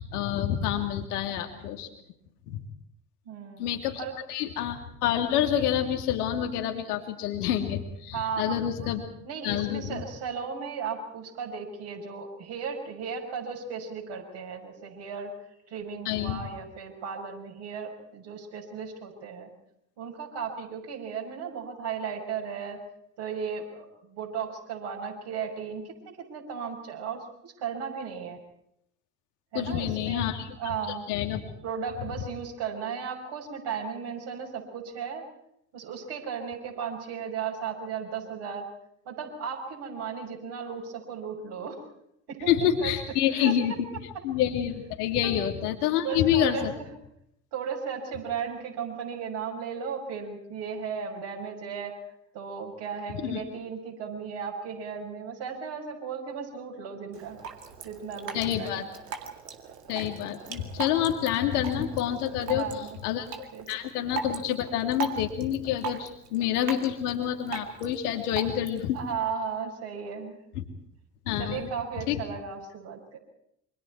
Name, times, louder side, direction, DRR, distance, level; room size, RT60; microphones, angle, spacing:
voice 1, 0.0-1.9 2.5-2.6 3.6-4.0 4.3-9.0 9.4-10.0 16.0-16.4 29.5-30.6 31.1-31.4 42.5-43.7 44.2-46.7 53.2-53.4 58.3-58.8 59.9-62.7 63.0-69.0 70.5-70.6 71.3-71.7 72.1-72.2, left 10 dB, 70° left, 5 dB, 3.0 m, -28 dB
voice 2, 3.2-3.7 4.0-4.2 8.1-8.5 9.2-15.3 15.7-19.5 20.0-22.8 23.2-28.4 29.5-30.2 30.6-31.1 31.6-35.2 35.7-38.7 39.0-41.8 42.3-42.5 42.8-42.9 43.3-43.5 45.2-45.4 46.0-46.9 47.5-52.0 52.3-57.4 57.8-58.9 62.4-63.0 63.5-63.7 68.9-70.4 71.4-73.2, right 6 dB, 55° right, 0 dB, 6.3 m, -35 dB
Drip, 57.1-69.1, right 6 dB, 80° right, 2.3 m, -40 dB
28.5 x 25.0 x 4.7 m, 0.78 s
figure-of-eight pair, 50°, 47 cm